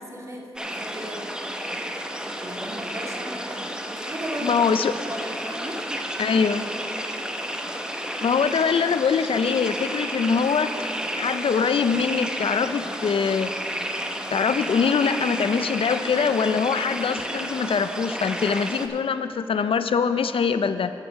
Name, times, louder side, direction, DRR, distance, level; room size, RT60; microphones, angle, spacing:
voice 1, 0.0-1.3 2.4-4.6 4.9-5.8, right 1 dB, 30° right, -1 dB, 1.9 m, -36 dB
sound 1, 0.6-18.9, equal, 10° right, 0.8 m, -31 dB
voice 2, 4.4-4.9 6.2-6.7 8.2-10.9 11.2-13.5 14.3-20.9, left 6 dB, 80° left, 11 dB, 0.4 m, -23 dB
8.3 x 8.1 x 6.2 m, 2.8 s
cardioid pair, 45°, 9 cm